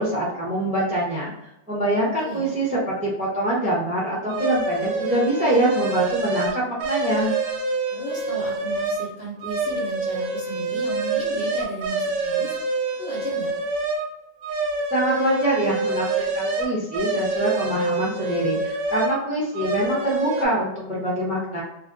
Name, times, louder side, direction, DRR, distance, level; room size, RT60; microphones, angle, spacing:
voice 1, 0.0-1.3 1.7-7.3 14.9-21.6, right 1 dB, 10° right, -5 dB, 0.4 m, -24 dB
voice 2, 1.9-2.5 7.9-13.5, right 1 dB, 55° left, -3 dB, 0.7 m, -36 dB
sound 1, 4.3-9.1 9.4-14.1 14.4-19.2 19.5-20.5, right 3 dB, 90° right, 1.0 m, -26 dB
2.5 x 2.2 x 2.5 m, 0.85 s
omnidirectional pair, 1.4 m